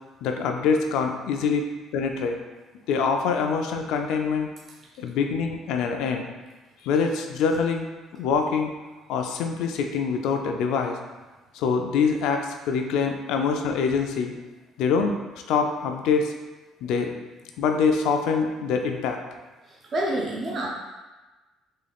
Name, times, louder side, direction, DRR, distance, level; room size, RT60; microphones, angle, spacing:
voice 1, 0.2-1.6 1.9-2.4 2.9-4.5 5.0-6.3 6.8-7.9 8.2-8.7 9.1-11.0 11.5-14.3 14.8-15.2 15.5-16.3 16.8-17.1 17.6-19.2, left 5 dB, 80° left, 4 dB, 0.4 m, -24 dB
voice 2, 19.6-20.7, right 1 dB, 40° right, -3 dB, 0.5 m, -29 dB
3.6 x 2.3 x 3.4 m, 1.2 s
cardioid pair, 120°, 0 cm